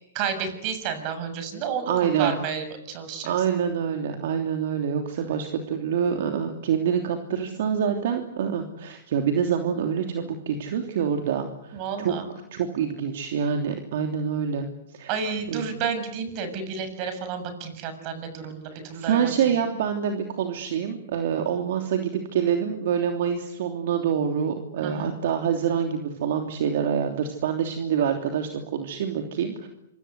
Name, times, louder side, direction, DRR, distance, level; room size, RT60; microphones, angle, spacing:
voice 1, 0.1-1.9 2.2-3.3 5.2-5.3 11.7-12.3 15.1-19.2 24.8-25.1, right 6 dB, 40° right, 10 dB, 7.0 m, -31 dB
voice 2, 1.9-2.3 3.2-12.1 12.5-15.1 15.5-15.6 18.7-29.7, right 8 dB, 60° right, 5 dB, 3.1 m, -26 dB
27.0 x 25.0 x 8.2 m, 0.84 s
hypercardioid pair, 125°, 0 cm